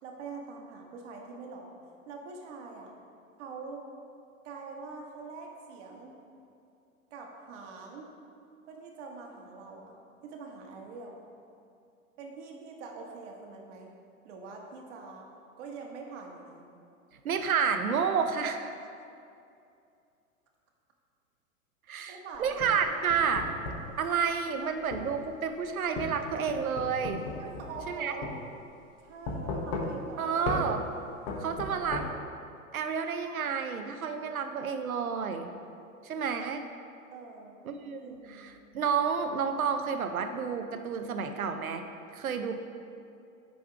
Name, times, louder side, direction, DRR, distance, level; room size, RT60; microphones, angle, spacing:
voice 1, 0.0-1.8 2.0-2.9 3.4-3.9 4.4-6.2 7.1-8.1 8.7-10.0 10.2-11.3 12.2-13.9 14.2-15.3 15.6-16.6 18.4-18.7 22.1-23.0 27.4-28.3 29.0-30.4 37.1-37.6 38.0-38.5, right 4 dB, 55° right, 1 dB, 1.4 m, -44 dB
voice 2, 17.2-18.6 21.9-23.5 24.0-27.2 27.9-28.1 30.2-30.8 31.4-32.1 32.7-35.5 36.0-36.6 37.6-41.8 42.1-42.5, right 6 dB, 80° right, 7 dB, 0.7 m, -30 dB
sound 1, 22.3-23.9 24.9-25.1 26.0-27.9 28.2-28.4 29.3-30.1 30.5-30.6 31.3-32.0, left 3 dB, 40° left, 1.2 m, -35 dB
9.2 x 3.6 x 4.7 m, 2.5 s
hypercardioid pair, 105°, 41 cm